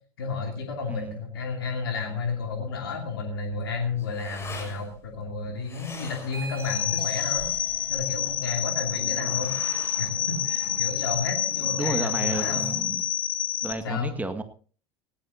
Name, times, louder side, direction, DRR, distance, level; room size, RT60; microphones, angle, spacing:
voice 1, 0.2-7.5 7.9-12.7 13.8-14.1, left 4 dB, 80° left, 2 dB, 2.8 m, -32 dB
voice 2, 0.9-1.2 11.8-13.0 13.6-14.4, right 2 dB, 15° right, 7 dB, 2.0 m, -32 dB
sound 1, 3.3-11.2, left 3 dB, 20° left, 6.1 m, -45 dB
sound 2, 6.2-12.8, right 2 dB, 90° right, 4.1 m, -44 dB
sound 3, 6.6-13.7, left 10 dB, 45° left, 2.1 m, -28 dB
18.5 x 17.5 x 2.8 m, 0.41 s
hypercardioid pair, 75°, 12 cm